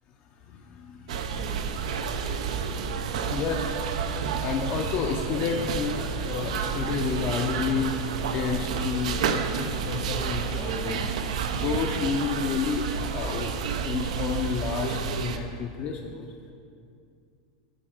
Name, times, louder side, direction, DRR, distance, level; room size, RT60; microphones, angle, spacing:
voice 1, 0.5-1.4 3.3-3.7 4.4-11.1 11.5-13.5 13.8-16.3, left 6 dB, 40° left, 2 dB, 0.5 m, -30 dB
sound 1, 1.1-15.4, right 6 dB, 80° right, 0.6 m, -30 dB
9.0 x 4.3 x 5.9 m, 2.4 s
supercardioid pair, 135°, 4 cm